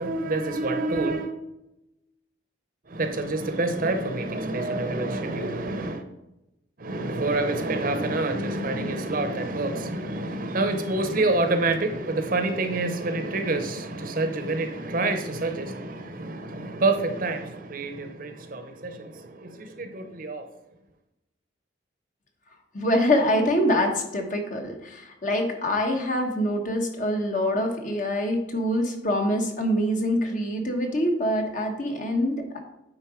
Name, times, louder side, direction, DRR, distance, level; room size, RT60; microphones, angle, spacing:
voice 1, 0.0-1.3 2.9-6.0 6.8-20.5, right 2 dB, 50° right, 0.8 m, -27 dB
voice 2, 22.7-32.6, equal, 45° left, 1.2 m, -25 dB
9.0 x 3.9 x 5.0 m
head